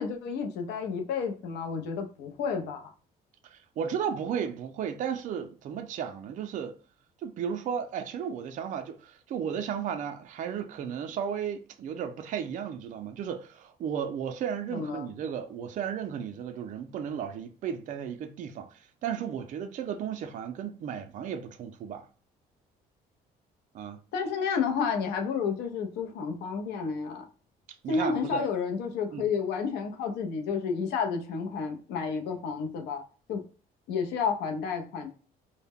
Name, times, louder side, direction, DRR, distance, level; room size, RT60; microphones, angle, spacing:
voice 1, 0.0-2.9 14.7-15.1 24.1-27.2 27.9-33.0 33.3-33.4 33.9-35.1, left 5 dB, 85° left, 0.6 m, -31 dB
voice 2, 3.5-6.8 7.2-22.1 23.7-24.0 27.8-28.4 29.1-29.3, right 8 dB, 50° right, 0.4 m, -34 dB
2.1 x 2.0 x 3.5 m
cardioid pair, 110°, 17 cm